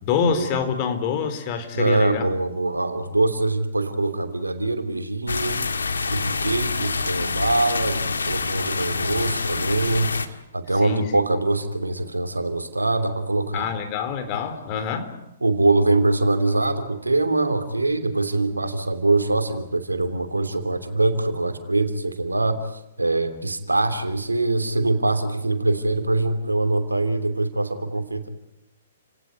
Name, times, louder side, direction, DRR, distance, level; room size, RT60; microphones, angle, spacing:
voice 1, 0.0-2.2 10.8-11.1 13.5-15.1, left 6 dB, 35° left, 9 dB, 4.1 m, -26 dB
voice 2, 1.7-5.6 6.1-13.7 15.4-22.6 23.0-28.3, right 2 dB, 90° right, 8 dB, 3.1 m, -23 dB
sound 1, 5.3-10.3, left 4 dB, 80° left, 1.9 m, -26 dB
30.0 x 18.0 x 9.4 m, 0.87 s
figure-of-eight pair, 120°, 0 cm